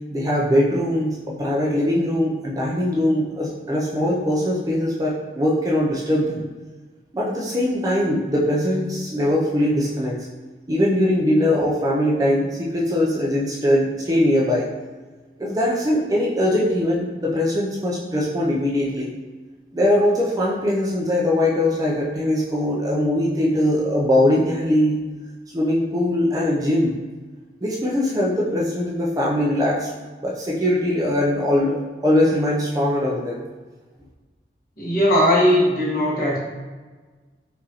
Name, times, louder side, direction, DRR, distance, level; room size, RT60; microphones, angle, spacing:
voice 1, 0.1-6.5 7.1-10.2 10.7-14.7 15.4-19.1 19.7-25.0 25.5-27.0 27.6-29.9 30.2-33.4, left 1 dB, 20° right, -4 dB, 0.4 m, -21 dB
voice 2, 34.8-36.4, equal, 50° left, -7 dB, 1.3 m, -18 dB
4.7 x 2.5 x 2.8 m, 1.3 s
head